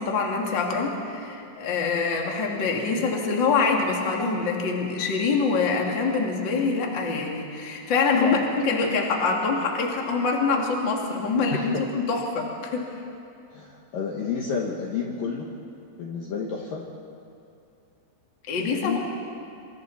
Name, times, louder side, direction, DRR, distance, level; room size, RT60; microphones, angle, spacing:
voice 1, 0.0-12.9 18.5-19.0, left 4 dB, 35° left, 0 dB, 2.0 m, -25 dB
voice 2, 8.1-8.5 11.5-11.8 13.5-15.5 16.0-16.8 18.6-19.0, left 6 dB, 65° left, -1 dB, 2.4 m, -30 dB
27.0 x 26.0 x 4.2 m, 2.6 s
omnidirectional pair, 5.4 m